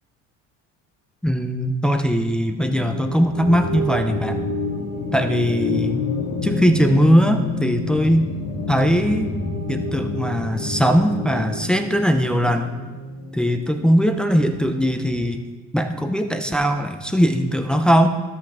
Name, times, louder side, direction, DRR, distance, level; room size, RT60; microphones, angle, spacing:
voice 1, 1.2-4.4 5.1-6.1 6.4-8.3 8.7-9.3 9.7-12.7 13.3-15.4 15.7-18.1, equal, 5° left, 6 dB, 0.4 m, -20 dB
sound 1, 2.6-15.3, left 3 dB, 50° left, 1.3 m, -28 dB
13.0 x 5.7 x 3.5 m, 1.2 s
cardioid pair, 135°, 31 cm